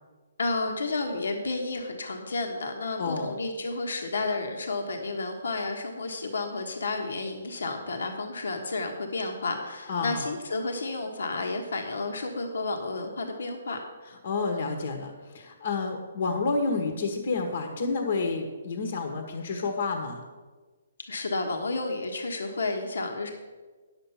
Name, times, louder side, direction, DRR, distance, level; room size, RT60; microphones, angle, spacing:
voice 1, 0.4-13.8 21.1-23.3, left 3 dB, 80° left, 3 dB, 1.3 m, -31 dB
voice 2, 3.0-3.3 9.9-10.3 14.0-20.2, left 4 dB, 55° left, 4 dB, 1.3 m, -30 dB
10.0 x 7.2 x 5.8 m, 1.4 s
hypercardioid pair, 155°, 0 cm